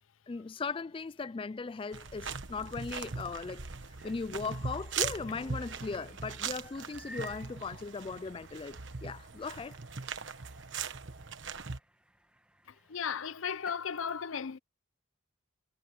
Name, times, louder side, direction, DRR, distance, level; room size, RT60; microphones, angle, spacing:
voice 1, 0.3-3.7 4.0-9.8, left 4 dB, 25° left, 0.3 m, -38 dB
sound 1, 1.9-11.8, right 6 dB, 60° right, 1.3 m, -40 dB
sound 2, 4.0-13.9, right 1 dB, 5° right, 1.4 m, -57 dB
sound 3, 5.3-9.4, right 1 dB, 20° right, 3.0 m, -62 dB
voice 2, 12.9-14.6, left 7 dB, 75° left, 0.6 m, -35 dB
head